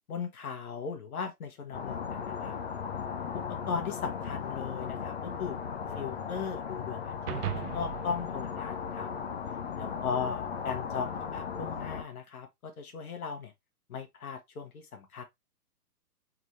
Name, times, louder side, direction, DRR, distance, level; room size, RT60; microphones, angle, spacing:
voice 1, 0.1-2.6 3.3-5.6 5.9-9.1 9.8-13.5 13.9-15.2, left 6 dB, 65° left, 1.4 m, -37 dB
sound 1, 1.7-12.0, left 6 dB, 45° left, 0.6 m, -37 dB
sound 2, 7.3-9.8, right 11 dB, 75° right, 0.6 m, -39 dB
3.6 x 2.9 x 3.1 m
hypercardioid pair, 150°, 47 cm